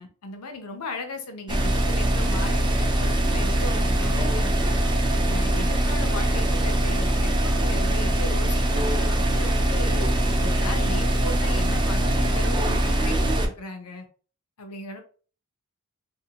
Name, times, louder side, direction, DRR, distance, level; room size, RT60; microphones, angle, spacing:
voice 1, 0.0-4.8 5.3-10.0 10.4-14.1 14.6-15.0, left 2 dB, 90° left, 5 dB, 0.7 m, -36 dB
sound 1, 1.5-13.5, right 1 dB, 20° right, 0.4 m, -22 dB
sound 2, 1.6-6.7, right 1 dB, 85° right, 0.9 m, -44 dB
2.6 x 2.6 x 2.8 m, 0.40 s
head